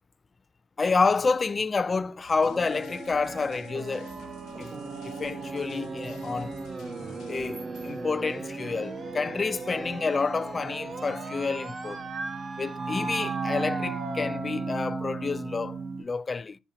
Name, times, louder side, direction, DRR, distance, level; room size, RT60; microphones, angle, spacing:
voice 1, 0.8-4.3 4.6-4.7 5.0-6.6 7.3-12.0 12.6-16.6, left 4 dB, 30° left, 0.3 m, -29 dB
sound 1, 1.6-2.1 2.6-3.3 4.0-4.5 5.1-6.9 7.4-8.1, right 4 dB, 75° right, 4.0 m, -57 dB
sound 2, 2.2-9.1 9.4-9.5, left 7 dB, 70° left, 0.9 m, -51 dB
sound 3, 2.4-16.0, right 3 dB, 35° right, 1.0 m, -35 dB
7.0 x 7.0 x 2.8 m
supercardioid pair, 80°, 0 cm